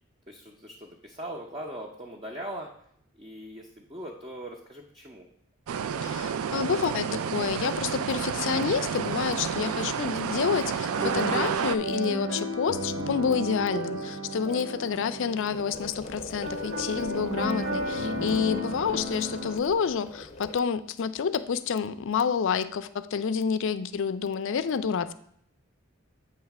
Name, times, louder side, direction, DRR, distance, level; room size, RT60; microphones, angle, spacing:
voice 1, 0.3-2.7 3.2-5.2 14.4-14.6, right 1 dB, 25° right, -1 dB, 0.7 m, -40 dB
sound 1, 5.7-11.8, right 7 dB, 75° right, 0.4 m, -30 dB
voice 2, 6.0-25.1, left 6 dB, 60° left, 13 dB, 0.4 m, -29 dB
sound 2, 10.9-19.6, right 1 dB, 55° right, 1.4 m, -33 dB
sound 3, 15.5-20.6, left 2 dB, 30° left, 0.8 m, -41 dB
8.0 x 3.2 x 5.9 m, 0.68 s
head